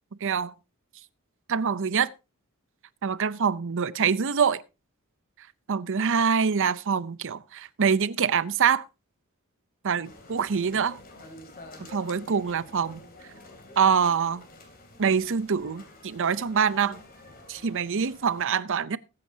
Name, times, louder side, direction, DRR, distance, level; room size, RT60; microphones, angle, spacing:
voice 1, 0.2-0.5 1.5-2.1 3.0-4.6 5.7-8.8 9.8-11.0 11.9-13.0 13.8-14.4 15.0-17.0 17.5-19.0, right 6 dB, 60° right, 0.6 m, -25 dB
sound 1, 10.0-18.4, left 2 dB, 45° left, 3.0 m, -49 dB
20.5 x 8.8 x 2.8 m
head